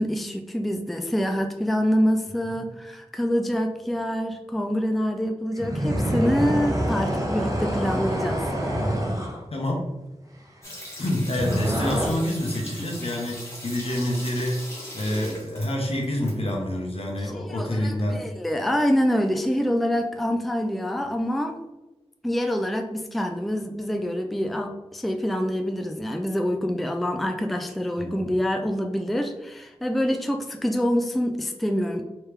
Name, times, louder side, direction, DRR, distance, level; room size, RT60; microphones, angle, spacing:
voice 1, 0.0-8.5 17.2-21.6 22.2-32.0, equal, ahead, 5 dB, 0.3 m, -26 dB
sound 1, 5.6-9.4 11.4-12.1, equal, 30° right, 0.8 m, -26 dB
voice 2, 9.5-9.8 11.0-14.6 14.9-18.3 28.0-28.3, left 1 dB, 65° left, 0 dB, 0.9 m, -27 dB
sound 2, 10.6-16.3 16.6-16.7, equal, 25° left, 1.3 m, -39 dB
3.3 x 3.1 x 3.2 m, 1.1 s
wide cardioid pair, 80°, 11 cm